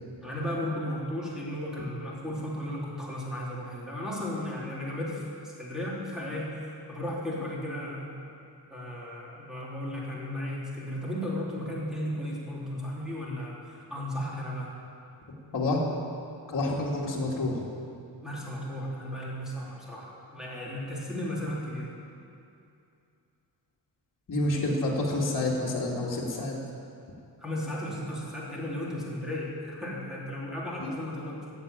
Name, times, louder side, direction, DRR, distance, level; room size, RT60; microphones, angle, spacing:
voice 1, 0.2-8.2 8.7-14.7 16.6-16.8 18.2-21.9 27.4-31.5, left 1 dB, ahead, -6 dB, 3.3 m, -35 dB
voice 2, 16.5-17.7 24.3-26.6 30.8-30.9, left 2 dB, 45° left, -4 dB, 2.3 m, -28 dB
13.5 x 7.9 x 8.9 m, 2.6 s
wide cardioid pair, 140°, 43 cm